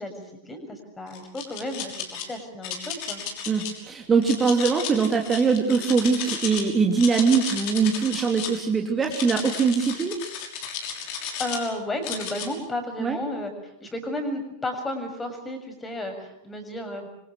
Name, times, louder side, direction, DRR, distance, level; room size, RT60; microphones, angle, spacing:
voice 1, 0.0-3.2 11.0-17.1, left 1 dB, 15° left, 6 dB, 6.8 m, -33 dB
sound 1, 1.1-2.2 2.6-3.7 4.2-6.6 6.9-8.6 9.0-11.7 12.0-12.5, left 8 dB, 45° left, 6.0 m, -33 dB
voice 2, 3.5-10.2 13.0-13.2, right 5 dB, 20° right, 2 dB, 3.2 m, -22 dB
26.5 x 25.5 x 6.5 m, 0.83 s
figure-of-eight pair, 90°, 0 cm